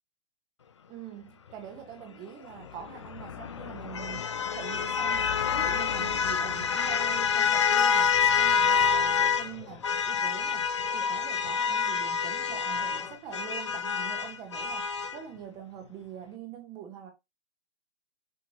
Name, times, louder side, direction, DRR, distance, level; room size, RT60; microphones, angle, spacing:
voice 1, 0.9-17.1, right 8 dB, 15° right, 1.1 m, -44 dB
sound 1, 1.5-13.2, left 8 dB, 40° left, 1.2 m, -47 dB
sound 2, 2.9-9.5 9.8-15.2, left 7 dB, 25° left, 0.5 m, -27 dB
6.4 x 5.7 x 2.9 m
figure-of-eight pair, 140°, 36 cm